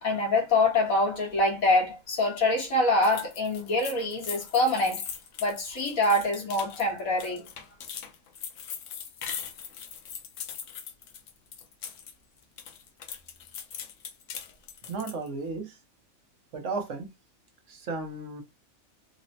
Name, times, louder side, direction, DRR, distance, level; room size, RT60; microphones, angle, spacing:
voice 1, 0.0-5.0 5.4-7.5, left 2 dB, 85° left, 1.6 m, -25 dB
sound 1, 3.0-12.1 12.4-15.3, left 8 dB, 70° left, 0.9 m, -40 dB
voice 2, 14.9-15.8 16.5-17.1 17.7-18.4, right 3 dB, 65° right, 1.1 m, -34 dB
3.9 x 2.1 x 2.7 m
omnidirectional pair, 1.4 m